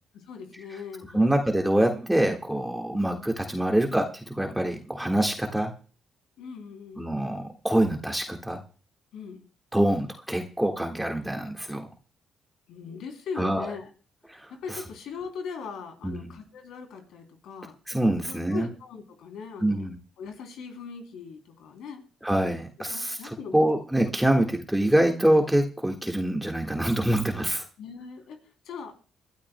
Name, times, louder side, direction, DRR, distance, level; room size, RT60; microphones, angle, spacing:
voice 1, 0.1-1.4 2.9-3.2 6.4-7.1 9.1-9.4 12.7-13.9 14.5-17.8 18.2-19.9 20.2-22.0 22.9-23.7 27.8-28.4 28.6-28.9, left 6 dB, 80° left, 5 dB, 3.1 m, -40 dB
voice 2, 1.1-5.7 7.0-8.6 9.7-11.9 13.4-13.7 14.3-14.8 16.0-16.3 17.9-18.7 19.6-19.9 22.2-23.2 23.5-27.6, right 1 dB, 5° right, 2 dB, 1.6 m, -25 dB
25.0 x 12.5 x 2.2 m, 0.37 s
cardioid pair, 90°, 0 cm